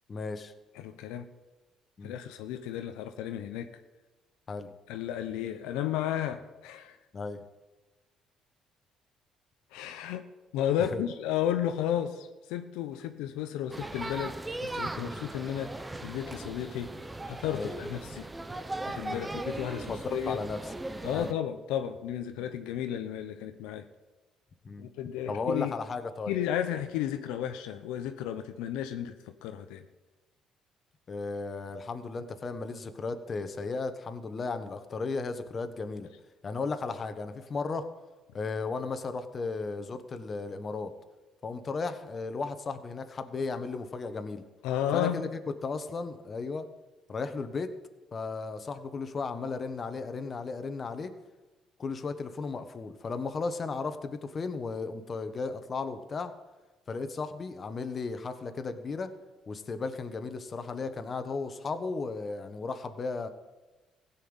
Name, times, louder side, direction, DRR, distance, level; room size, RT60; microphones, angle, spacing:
voice 1, 0.1-0.5 2.0-2.2 4.5-4.7 7.1-7.4 10.8-11.0 15.0-15.2 17.5-17.7 19.0-19.2 19.9-20.7 21.1-21.3 24.6-24.9 25.3-26.4 31.1-36.1 36.4-37.9 38.3-40.9 41.4-44.4 44.9-46.7 47.1-47.7 48.1-51.1 51.8-56.3 56.9-59.1 59.5-63.3, left 4 dB, 40° left, 9 dB, 1.3 m, -35 dB
voice 2, 0.8-1.3 2.0-3.7 4.9-7.0 9.7-10.2 10.5-17.0 17.3-18.3 18.9-20.4 21.0-23.9 24.8-25.7 26.3-29.8 44.6-45.2, left 10 dB, 90° left, 7 dB, 0.7 m, -33 dB
sound 1, 13.7-21.3, right 2 dB, 15° right, 0.8 m, -38 dB
15.5 x 5.8 x 8.9 m, 1.2 s
supercardioid pair, 80°, 0 cm